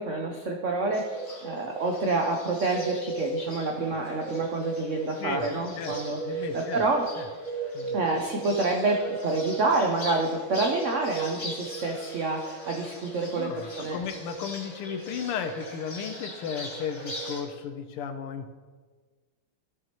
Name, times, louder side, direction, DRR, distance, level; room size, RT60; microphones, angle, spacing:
voice 1, 0.0-7.1 7.9-14.0, right 3 dB, 90° right, 1 dB, 0.6 m, -28 dB
Bird, 0.9-17.4, right 2 dB, 45° left, 2.4 m, -37 dB
voice 2, 6.2-6.8 7.2-7.3 7.7-8.0 13.4-18.5, left 7 dB, 90° left, 8 dB, 1.7 m, -34 dB
15.5 x 6.1 x 3.0 m, 1.4 s
omnidirectional pair, 2.4 m